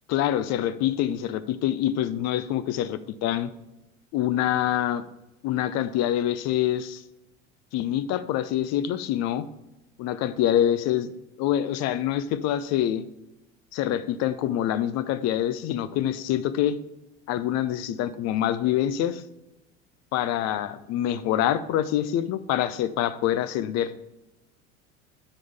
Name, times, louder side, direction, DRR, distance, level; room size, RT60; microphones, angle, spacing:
voice 1, 0.1-3.5 4.1-5.0 5.4-7.0 7.7-9.4 10.0-11.1 11.4-13.0 13.7-16.8 17.3-19.2 20.1-23.9, left 11 dB, 40° left, 14 dB, 0.6 m, -25 dB
7.7 x 6.2 x 3.5 m, 0.95 s
hypercardioid pair, 75°, 39 cm